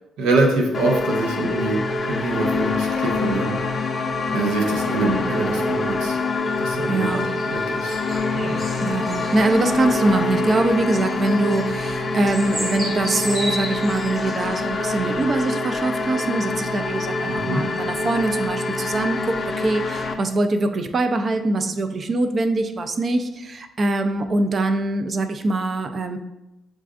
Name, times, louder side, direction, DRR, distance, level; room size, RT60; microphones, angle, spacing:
voice 1, 0.2-3.6 4.3-6.2 6.6-8.0 8.3-8.6 17.3-17.7, right 2 dB, 90° right, 1 dB, 0.7 m, -24 dB
sound 1, 0.7-20.1, left 3 dB, 35° left, 0.5 m, -25 dB
sound 2, 6.2-15.2, equal, 20° right, 1.1 m, -36 dB
voice 2, 6.9-7.3 8.8-26.2, right 2 dB, 40° right, 8 dB, 0.4 m, -23 dB
7.2 x 2.5 x 2.4 m, 0.92 s
cardioid pair, 90°, 0 cm